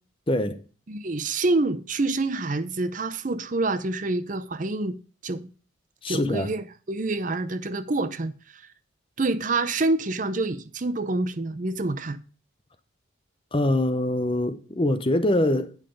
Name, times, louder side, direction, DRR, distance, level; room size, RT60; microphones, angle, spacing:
voice 1, 0.3-0.6 6.0-6.5 13.5-15.7, left 1 dB, 25° left, 0.7 m, -24 dB
voice 2, 0.9-5.0 5.2-5.5 6.1-8.7 9.2-12.2, right 2 dB, 40° right, 0.6 m, -27 dB
8.9 x 5.7 x 4.9 m
head